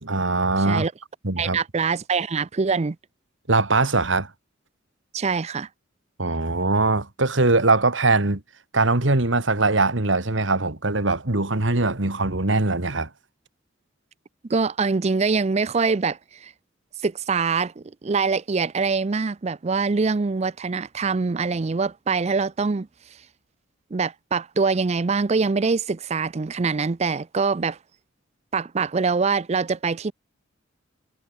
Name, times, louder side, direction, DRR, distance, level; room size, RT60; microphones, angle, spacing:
voice 1, 0.0-0.9 1.2-1.6 3.5-4.3 6.2-8.4 8.7-13.1, right 3 dB, 70° right, 2.1 m, -21 dB
voice 2, 1.4-3.0 5.1-5.7 14.5-16.5 17.0-22.9 23.9-27.8 28.5-30.1, right 4 dB, 35° right, 0.5 m, -24 dB
head